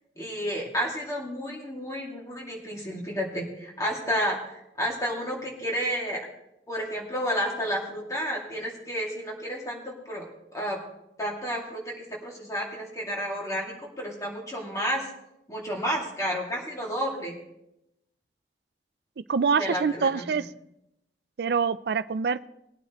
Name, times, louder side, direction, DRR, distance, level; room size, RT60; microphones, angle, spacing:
voice 1, 0.2-6.2 6.7-10.8 11.2-15.1 15.5-17.3 19.6-20.3, equal, 20° left, -2 dB, 2.3 m, -31 dB
voice 2, 19.2-20.5 21.4-22.5, right 5 dB, 65° right, 16 dB, 0.4 m, -25 dB
20.0 x 9.1 x 3.0 m, 0.85 s
head